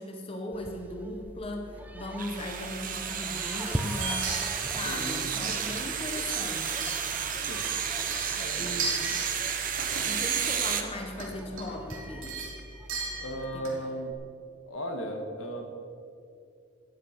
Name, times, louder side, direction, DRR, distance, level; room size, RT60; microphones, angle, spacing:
voice 1, 0.0-4.4 4.7-6.9 8.6-9.2 10.0-12.5 13.5-13.8, left 1 dB, 30° left, 3 dB, 1.2 m, -38 dB
sound 1, 0.5-13.4, equal, 10° right, 0.7 m, -41 dB
sound 2, 2.2-10.8, right 8 dB, 40° right, 1.0 m, -32 dB
sound 3, 4.0-5.8 6.1-7.4 7.6-9.3 9.7-10.2 11.1-11.3 11.6-13.9 14.1-14.2, right 4 dB, 80° right, 3.5 m, -36 dB
voice 2, 4.8-5.7 7.5-7.6 8.4-8.7 13.2-14.1 14.7-15.7, equal, 80° left, 4 dB, 1.8 m, -36 dB
13.5 x 10.0 x 6.0 m, 2.4 s
head